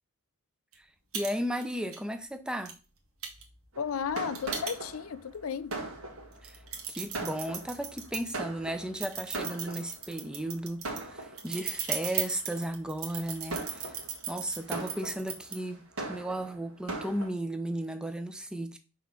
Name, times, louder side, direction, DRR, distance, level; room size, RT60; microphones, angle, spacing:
sound 1, 0.7-0.8 1.1-1.3 1.6-2.0 2.7-2.8 3.2-5.2 5.7-5.8 6.3-8.3 8.9-15.5, right 7 dB, 85° right, 1.5 m, -37 dB
voice 1, 1.1-2.8 6.4-6.6 7.0-14.0 14.3-18.8, right 1 dB, 5° right, 0.6 m, -35 dB
Fireworks, 3.7-10.2 10.8-11.7 12.3-12.6 13.1-17.3, right 2 dB, 65° right, 1.6 m, -40 dB
voice 2, 3.8-5.8, left 7 dB, 75° left, 0.5 m, -34 dB
5.8 x 3.6 x 5.8 m
head